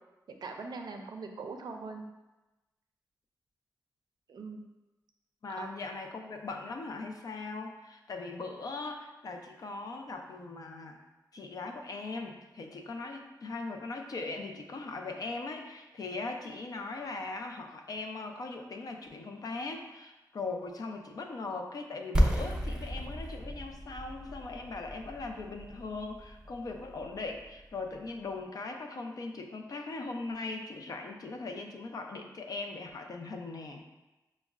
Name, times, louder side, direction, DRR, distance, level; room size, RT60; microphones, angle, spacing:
voice 1, 0.3-2.1 4.3-4.6 5.6-5.7, right 4 dB, 80° right, 4 dB, 0.4 m, -41 dB
voice 2, 5.4-11.0 11.3-33.8, left 3 dB, 60° left, 3 dB, 0.4 m, -40 dB
sound 1, 22.1-27.9, equal, 10° right, 0.4 m, -33 dB
6.1 x 2.1 x 2.3 m, 1.1 s
wide cardioid pair, 125°, 7 cm